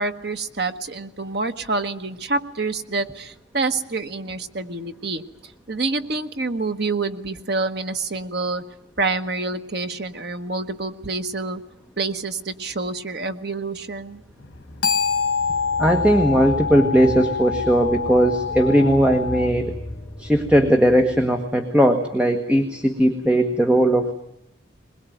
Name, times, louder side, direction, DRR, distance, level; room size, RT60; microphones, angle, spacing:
voice 1, 0.0-8.6 9.0-11.6 12.0-14.2, right 3 dB, 55° right, 7 dB, 1.3 m, -27 dB
sound 1, 13.9-21.5, left 1 dB, 35° left, 4.3 m, -36 dB
sound 2, 14.4-19.5, left 6 dB, 80° left, 1.9 m, -26 dB
voice 2, 15.8-19.7 20.2-24.1, right 1 dB, 5° right, 4 dB, 1.3 m, -18 dB
21.5 x 21.5 x 9.2 m, 0.83 s
head